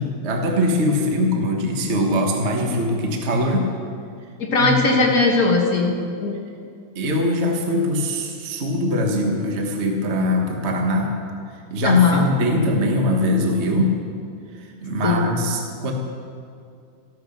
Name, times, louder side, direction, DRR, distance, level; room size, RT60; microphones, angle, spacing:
voice 1, 0.0-3.7 4.6-5.1 6.9-11.1 11.7-13.9 14.6-15.9, left 1 dB, 50° right, 1 dB, 0.8 m, -22 dB
voice 2, 4.4-6.3 11.8-12.2 15.0-15.3, left 3 dB, 50° left, 0 dB, 1.0 m, -19 dB
14.5 x 11.0 x 6.7 m, 2.3 s
omnidirectional pair, 3.8 m